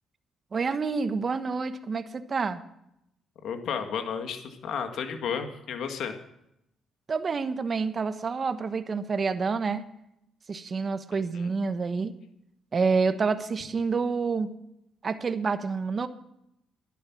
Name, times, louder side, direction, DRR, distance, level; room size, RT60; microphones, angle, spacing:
voice 1, 0.5-2.6 7.1-9.8 10.5-12.1 12.7-14.5 15.0-16.1, right 4 dB, 40° right, 11 dB, 1.1 m, -28 dB
voice 2, 3.4-6.1 11.3-11.5, left 7 dB, 75° left, 6 dB, 1.9 m, -32 dB
12.0 x 11.5 x 6.1 m, 0.80 s
cardioid pair, 90°, 0 cm